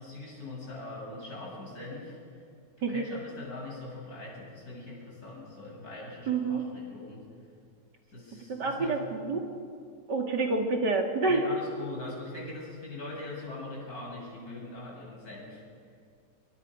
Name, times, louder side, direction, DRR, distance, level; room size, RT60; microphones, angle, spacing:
voice 1, 0.0-2.4 2.9-7.2 8.1-9.0 11.3-15.6, left 2 dB, 60° left, -4 dB, 8.3 m, -42 dB
voice 2, 6.3-6.6 8.5-9.5 10.1-11.4, right 3 dB, 85° right, 2 dB, 3.3 m, -28 dB
27.0 x 24.0 x 6.5 m, 2.3 s
omnidirectional pair, 1.8 m